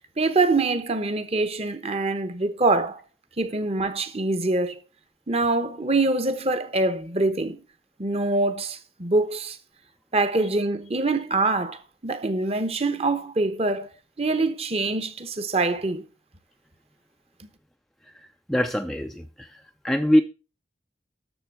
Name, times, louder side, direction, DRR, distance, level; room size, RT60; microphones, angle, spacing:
voice 1, 0.2-3.0 3.4-4.8 5.3-7.6 8.0-9.6 10.1-13.9 14.2-16.0, right 2 dB, 35° right, 1.0 m, -24 dB
voice 2, 18.1-19.6 19.8-20.2, equal, ahead, 0.4 m, -23 dB
11.0 x 7.0 x 4.7 m
head